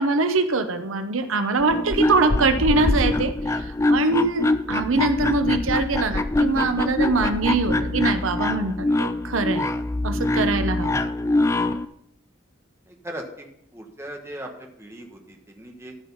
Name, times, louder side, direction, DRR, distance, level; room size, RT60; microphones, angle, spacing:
voice 1, 0.0-3.6 3.9-9.7 10.0-11.1, right 3 dB, 85° right, 8 dB, 0.9 m, -23 dB
sound 1, 1.6-11.9, left 2 dB, 15° left, 0.3 m, -24 dB
voice 2, 12.9-15.9, right 1 dB, 15° right, 2 dB, 1.3 m, -40 dB
13.5 x 5.3 x 5.5 m, 0.76 s
head